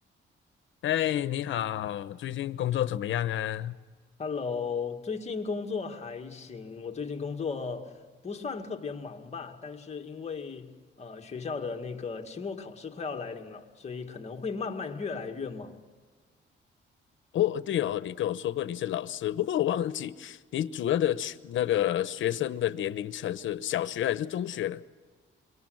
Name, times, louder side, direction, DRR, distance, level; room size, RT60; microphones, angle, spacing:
voice 1, 0.8-3.7 17.3-24.8, left 12 dB, 85° left, 1.0 m, -29 dB
voice 2, 4.2-15.8, left 5 dB, 35° left, 2.1 m, -36 dB
26.0 x 24.5 x 7.9 m
cardioid pair, 130°, 20 cm